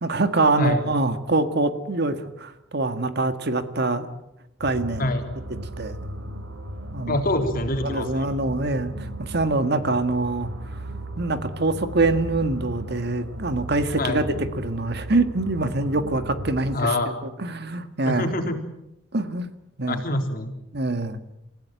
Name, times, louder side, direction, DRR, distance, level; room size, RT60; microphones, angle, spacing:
voice 1, 0.0-4.1 4.6-5.1 5.8-6.0 6.9-7.2 7.8-10.5 11.2-16.9 17.4-18.3 19.1-19.5 19.8-20.0 20.7-21.2, right 2 dB, 55° right, 9 dB, 1.7 m, -24 dB
sound 1, 4.6-16.8, right 1 dB, 80° right, 3.4 m, -36 dB
voice 2, 7.1-8.3 14.0-14.2 16.7-17.1 18.1-18.6 19.9-20.5, left 1 dB, 50° left, 5 dB, 3.7 m, -25 dB
28.5 x 16.0 x 9.2 m, 0.88 s
head